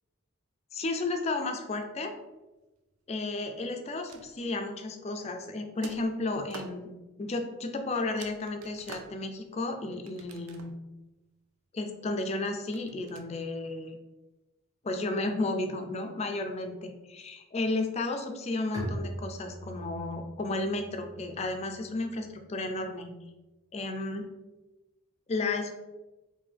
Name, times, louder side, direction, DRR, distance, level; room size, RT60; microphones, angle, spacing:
voice 1, 0.7-2.2 3.1-6.9 7.2-10.7 11.7-14.0 14.8-23.1 23.7-24.3 25.3-25.8, left 2 dB, 30° left, 5 dB, 0.3 m, -33 dB
sound 1, 3.9-4.7 5.8-6.8 7.7-7.8 8.2-9.5 10.1-10.9 12.7-13.2, right 4 dB, 85° right, 0.4 m, -48 dB
Bowed string instrument, 18.7-22.3, right 1 dB, 20° right, 0.7 m, -41 dB
3.3 x 2.6 x 3.5 m, 1.1 s
head